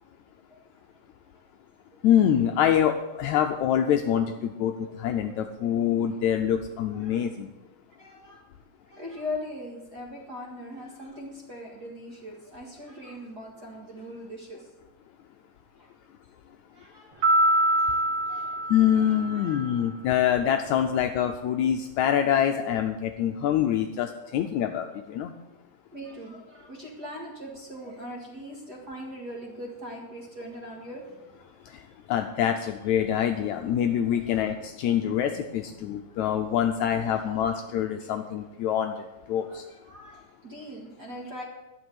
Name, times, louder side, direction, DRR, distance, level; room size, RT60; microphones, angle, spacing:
voice 1, 0.5-0.9 1.3-1.5 6.9-7.3 7.9-8.5 8.8-14.7 15.7-15.9 16.7-18.6 18.9-19.8 25.9-31.4 33.9-34.6 36.0-36.2 36.5-36.6 37.0-37.5 39.4-41.4, left 1 dB, 40° right, -1 dB, 1.8 m, -41 dB
voice 2, 2.0-7.5 18.7-25.3 31.7-31.8 32.1-39.6, left 9 dB, 80° left, 5 dB, 1.7 m, -25 dB
sound 1, 17.2-19.7, right 1 dB, 55° right, 2.7 m, -25 dB
11.5 x 6.2 x 9.0 m, 1.1 s
omnidirectional pair, 3.8 m